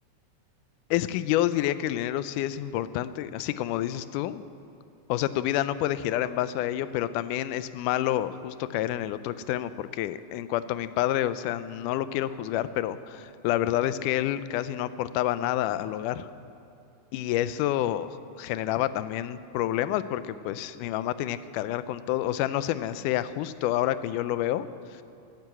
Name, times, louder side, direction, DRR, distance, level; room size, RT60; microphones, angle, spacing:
voice 1, 0.9-4.5 5.1-16.3 17.1-25.0, left 13 dB, 90° left, 14 dB, 2.1 m, -28 dB
12.5 x 12.0 x 8.3 m, 2.6 s
omnidirectional pair, 3.6 m